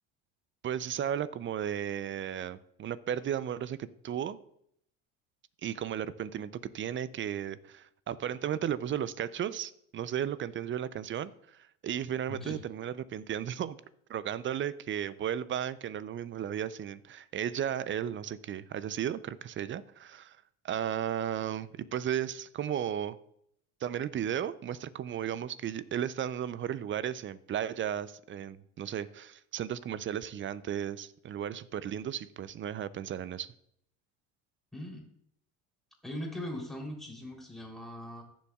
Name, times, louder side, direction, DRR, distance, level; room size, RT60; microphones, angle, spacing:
voice 1, 0.6-4.4 5.6-13.8 14.1-20.4 20.6-23.2 23.8-33.5, right 9 dB, 30° right, 0.5 m, -35 dB
voice 2, 12.3-12.6 34.7-35.0 36.0-38.2, left 1 dB, ahead, 3.4 m, -40 dB
16.5 x 7.1 x 2.4 m
hypercardioid pair, 80°, 39 cm